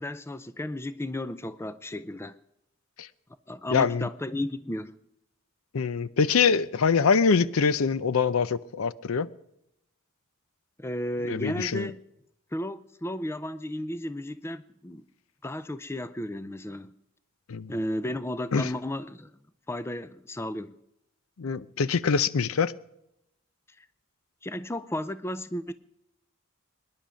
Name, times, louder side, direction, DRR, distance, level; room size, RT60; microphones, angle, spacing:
voice 1, 0.0-2.4 3.5-5.0 10.8-12.0 12.5-15.0 15.4-16.9 17.7-19.3 19.7-20.8 23.8-23.9 24.4-25.7, left 1 dB, 10° left, 0.5 m, -34 dB
voice 2, 3.7-4.1 5.7-9.3 11.3-11.9 17.5-17.7 18.5-18.7 21.4-22.7, left 5 dB, 85° left, 0.5 m, -24 dB
24.0 x 10.5 x 5.1 m
head